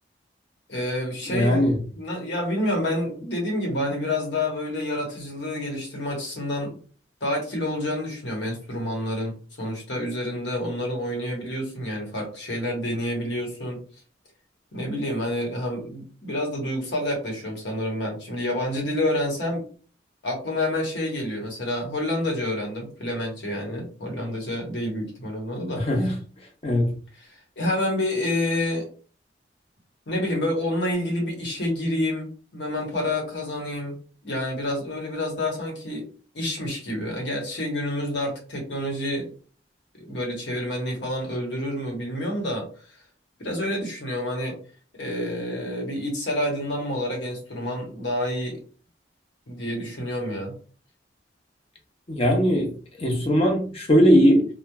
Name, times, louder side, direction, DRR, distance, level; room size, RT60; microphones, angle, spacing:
voice 1, 0.7-1.7 2.0-6.8 7.2-13.8 14.7-19.6 20.2-25.8 27.2-28.9 30.1-34.0 34.2-36.1 36.3-39.3 40.1-42.7 43.4-44.6 44.9-48.6 49.5-50.6, left 1 dB, 85° left, 0 dB, 1.1 m, -28 dB
voice 2, 1.3-1.8 25.8-26.2 26.6-26.9 52.1-52.7 53.0-54.5, equal, 35° left, 1 dB, 0.7 m, -19 dB
2.9 x 2.2 x 2.3 m, 0.40 s
head